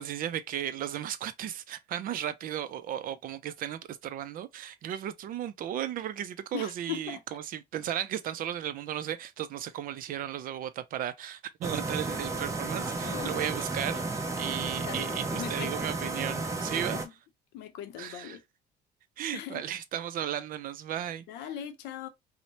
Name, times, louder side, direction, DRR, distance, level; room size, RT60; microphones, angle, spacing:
voice 1, 0.0-17.0 18.0-18.4 19.2-21.2, right 11 dB, 55° right, 0.4 m, -35 dB
voice 2, 6.5-7.2 12.9-13.4 14.8-15.9 16.9-17.0 17.5-18.4 19.3-19.6 21.3-22.1, left 10 dB, 90° left, 0.6 m, -39 dB
sound 1, 11.6-17.1, right 3 dB, 20° right, 0.6 m, -33 dB
2.7 x 2.1 x 2.9 m
cardioid pair, 110°, 17 cm